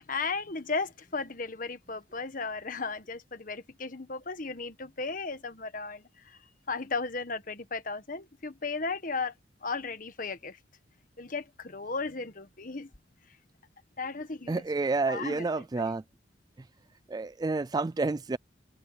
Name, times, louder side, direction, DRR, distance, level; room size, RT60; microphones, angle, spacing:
voice 1, 0.0-6.4 6.7-9.3 9.6-10.6 11.2-12.9 14.0-14.6 15.1-15.9, left 4 dB, 45° left, 1.5 m, -35 dB
voice 2, 14.5-16.0 17.1-18.4, right 3 dB, 20° right, 0.3 m, -29 dB
head